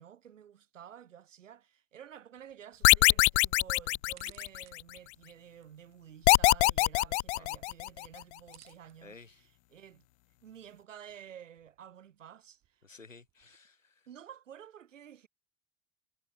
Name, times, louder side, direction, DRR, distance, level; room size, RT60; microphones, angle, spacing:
voice 1, 0.0-10.1 10.4-12.8 14.1-15.3, right 9 dB, 80° right, 2.8 m, -52 dB
sound 1, 2.3-13.6, right 14 dB, 45° right, 4.7 m, -65 dB
sound 2, 2.8-4.8 6.3-8.1, left 20 dB, 65° left, 0.5 m, -23 dB
voice 2, 9.0-9.4 12.8-14.1, left 4 dB, 90° left, 3.8 m, -54 dB
figure-of-eight pair, 70°, 38 cm